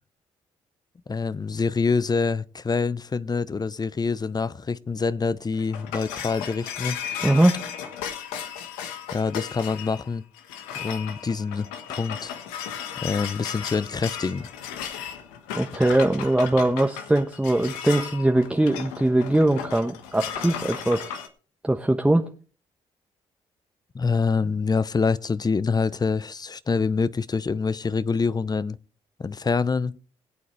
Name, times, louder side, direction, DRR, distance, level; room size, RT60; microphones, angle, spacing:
voice 1, 1.1-7.0 9.1-10.2 10.8-12.3 13.0-14.5 23.9-28.8 29.2-30.0, left 4 dB, 30° left, 0.8 m, -26 dB
sound 1, 5.3-21.3, left 8 dB, 90° left, 1.3 m, -35 dB
voice 2, 7.2-7.6 15.6-21.1 21.6-22.2, right 1 dB, 10° right, 1.1 m, -21 dB
21.5 x 8.5 x 3.3 m
supercardioid pair, 60°, 14 cm